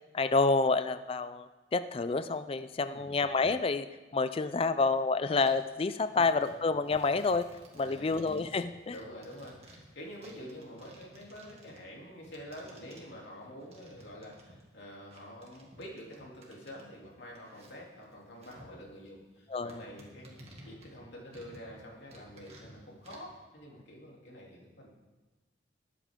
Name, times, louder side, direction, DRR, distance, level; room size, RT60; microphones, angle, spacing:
voice 1, 0.1-3.9 4.1-7.4 7.7-8.9 19.5-19.8, left 3 dB, 30° left, 12 dB, 0.4 m, -28 dB
sound 1, 5.4-5.8 6.1-14.8 15.1-18.7 19.1-19.2 19.7-21.8 22.1-23.3, right 1 dB, 35° right, 2.1 m, -56 dB
voice 2, 6.1-6.5 7.8-8.2 8.9-24.9, equal, 75° left, -2 dB, 3.0 m, -48 dB
20.5 x 8.5 x 3.7 m, 1.2 s
head